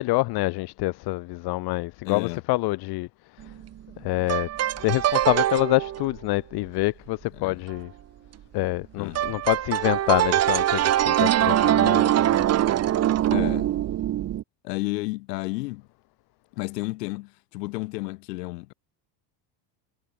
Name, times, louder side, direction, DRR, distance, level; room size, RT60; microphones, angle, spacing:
voice 1, 0.0-3.1 4.0-4.5 4.8-7.9 8.5-12.4, left 21 dB, 55° left, 1.1 m, -26 dB
voice 2, 2.0-2.4 7.3-7.6 8.9-9.4 13.3-13.7 14.6-15.8 16.5-18.7, left 22 dB, 90° left, 2.1 m, -32 dB
sound 1, 3.4-3.7 4.3-6.2 9.2-14.4, right 12 dB, 30° right, 0.9 m, -23 dB
supercardioid pair, 120°, 47 cm